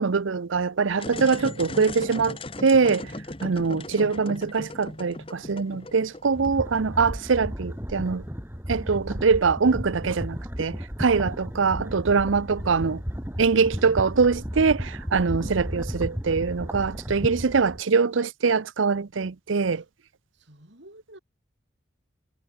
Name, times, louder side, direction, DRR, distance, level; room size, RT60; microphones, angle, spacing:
voice 1, 0.0-3.1 3.4-8.2 8.7-13.0 13.4-19.8, right 5 dB, 90° right, 0.6 m, -23 dB
sound 1, 0.9-6.8, left 2 dB, 30° left, 1.9 m, -37 dB
sound 2, 6.2-17.8, equal, 10° right, 4.0 m, -34 dB
voice 2, 12.6-14.0 19.7-19.9 20.3-21.2, right 1 dB, 70° right, 7.0 m, -52 dB
head